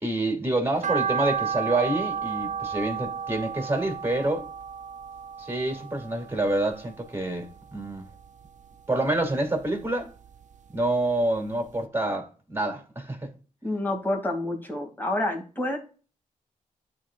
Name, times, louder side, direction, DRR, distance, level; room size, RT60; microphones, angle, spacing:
voice 1, 0.0-4.5 5.4-8.1 8.9-10.1 10.7-13.3, right 2 dB, 15° right, 2.5 m, -27 dB
sound 1, 0.8-7.1 7.5-8.6 9.0-10.4 10.8-10.9 11.4-11.5 11.7-11.8, right 7 dB, 60° right, 0.4 m, -32 dB
voice 2, 13.6-15.8, left 1 dB, 15° left, 2.3 m, -28 dB
11.5 x 4.2 x 2.4 m
cardioid pair, 80°, 14 cm